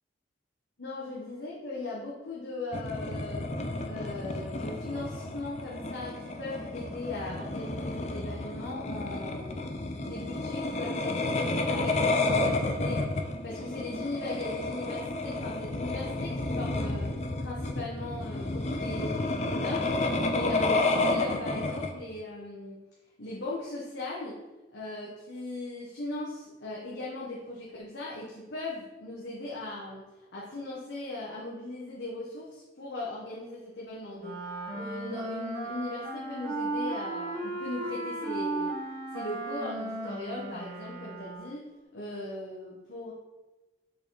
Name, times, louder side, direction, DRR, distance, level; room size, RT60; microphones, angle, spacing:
voice 1, 0.8-3.4 3.8-13.1 13.4-17.1 17.4-22.8 23.2-24.4 24.7-30.0 30.3-34.4 34.7-38.7 39.1-41.7 41.9-43.1, left 2 dB, 80° left, -6 dB, 1.4 m, -38 dB
sound 1, 2.7-21.9, left 2 dB, 35° left, 0.6 m, -31 dB
Wind instrument woodwind instrument, 34.2-41.6, right 2 dB, 55° right, 2.6 m, -35 dB
6.9 x 5.4 x 4.0 m, 1.1 s
head